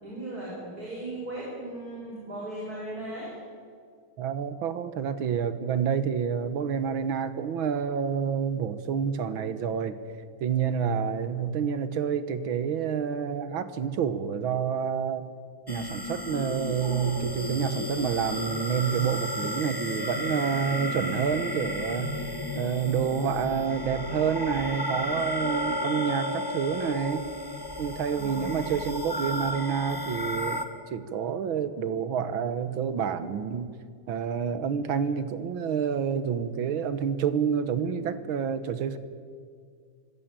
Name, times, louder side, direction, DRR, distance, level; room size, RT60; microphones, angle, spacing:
voice 1, 0.0-3.3 28.1-28.6, right 1 dB, 45° right, -5 dB, 6.2 m, -37 dB
voice 2, 4.2-10.0 10.4-15.3 15.7-22.2 22.6-27.3 27.8-33.7 34.1-39.0, right 7 dB, 70° right, 12 dB, 1.9 m, -28 dB
sound 1, 15.7-30.6, left 1 dB, 15° left, 1.2 m, -33 dB
26.5 x 15.5 x 8.9 m, 2.1 s
omnidirectional pair, 2.3 m